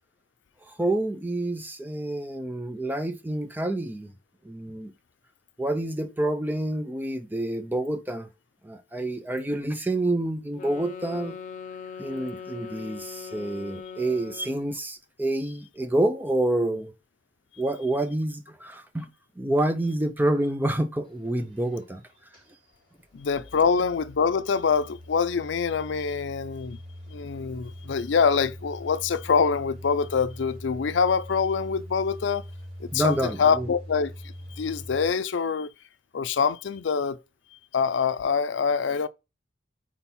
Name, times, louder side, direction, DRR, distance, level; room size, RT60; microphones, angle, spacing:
voice 1, 0.8-4.1 4.4-4.9 5.6-8.3 8.6-11.4 12.0-16.9 17.6-19.1 19.4-22.0 32.9-33.7, right 1 dB, 10° right, 0.5 m, -28 dB
sound 1, 10.5-14.8, left 6 dB, 45° left, 0.7 m, -40 dB
sound 2, 21.0-35.1, equal, 30° right, 3.4 m, -43 dB
voice 2, 23.1-26.8 27.1-32.4 32.8-34.1 34.6-35.7 36.1-37.2 37.7-39.1, left 5 dB, 85° left, 0.5 m, -25 dB
4.5 x 4.3 x 5.5 m
head